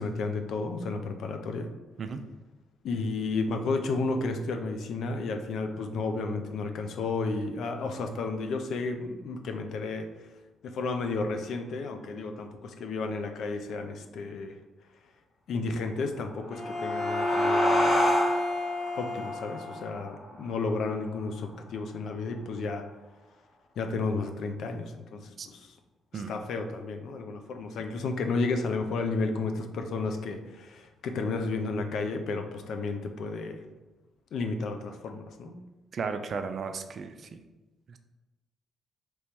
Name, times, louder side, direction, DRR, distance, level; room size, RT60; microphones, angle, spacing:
voice 1, 0.0-1.7 2.8-10.1 10.6-14.5 15.5-18.2 19.0-22.8 23.8-25.7 26.1-33.6 34.3-35.5, left 3 dB, 70° left, 5 dB, 0.5 m, -32 dB
sound 1, 16.3-21.5, left 1 dB, 35° left, 1.4 m, -31 dB
Bowed string instrument, 16.5-20.0, left 1 dB, 15° left, 1.1 m, -29 dB
voice 2, 35.9-37.4, right 5 dB, 50° right, 8 dB, 0.4 m, -34 dB
3.4 x 3.0 x 4.3 m, 1.1 s
cardioid pair, 90°, 0 cm